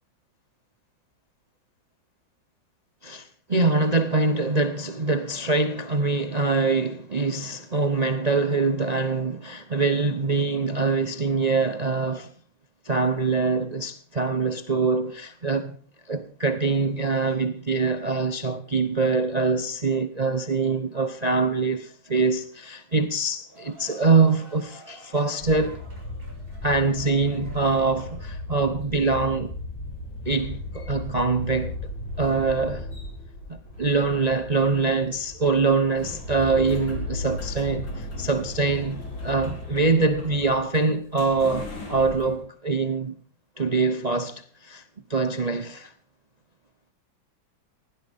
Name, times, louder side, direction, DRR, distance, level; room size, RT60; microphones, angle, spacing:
voice 1, 3.0-12.3 12.8-15.7 16.1-25.8 26.6-29.5 30.2-31.7 32.2-32.9 33.5-43.1 43.6-44.8 45.1-45.9, right 3 dB, 55° right, 0.4 m, -24 dB
sound 1, 23.2-28.6, right 1 dB, 25° right, 6.1 m, -49 dB
sound 2, 25.4-42.4, left 2 dB, 70° left, 4.3 m, -37 dB
sound 3, 30.3-40.6, left 1 dB, 30° left, 4.4 m, -46 dB
20.0 x 16.5 x 3.6 m
omnidirectional pair, 2.1 m